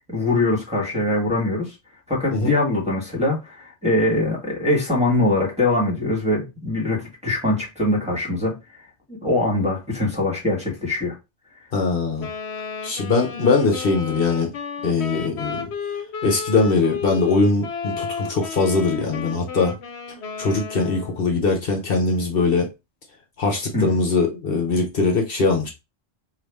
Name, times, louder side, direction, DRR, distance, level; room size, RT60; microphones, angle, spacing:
voice 1, 0.1-1.7 2.1-8.6 9.1-11.1 23.7-24.0, left 2 dB, 5° right, 1.4 m, -22 dB
voice 2, 11.7-12.3 12.8-14.5 14.8-15.7 16.2-19.8 20.4-22.7 23.4-25.7, left 3 dB, 60° left, 1.1 m, -21 dB
Wind instrument woodwind instrument, 12.2-21.2, left 6 dB, 85° left, 1.0 m, -33 dB
4.7 x 2.5 x 3.4 m
omnidirectional pair, 1.1 m